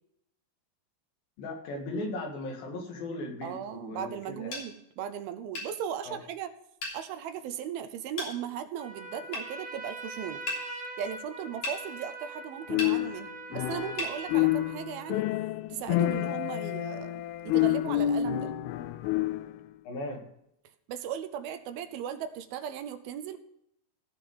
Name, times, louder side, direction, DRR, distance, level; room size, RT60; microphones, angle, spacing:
voice 1, 1.4-4.6 6.0-6.2 19.9-20.2, left 2 dB, 70° left, 2 dB, 3.7 m, -37 dB
voice 2, 3.4-6.5 6.9-10.4 11.0-15.2 15.7-18.5 20.9-23.4, right 9 dB, 80° right, 10 dB, 2.6 m, -37 dB
sound 1, 4.5-4.7 5.6-5.7 6.8-7.0 8.2-8.3 9.3-9.5 10.5-10.6 11.6-11.8 12.8-13.0 14.0-14.2, left 2 dB, 50° left, 4.3 m, -34 dB
Trumpet, 8.8-15.2, right 2 dB, 60° right, 0.9 m, -43 dB
sound 2, 12.7-14.0 14.3-19.6, left 14 dB, 90° left, 2.5 m, -28 dB
16.5 x 6.2 x 5.4 m, 0.78 s
omnidirectional pair, 4.4 m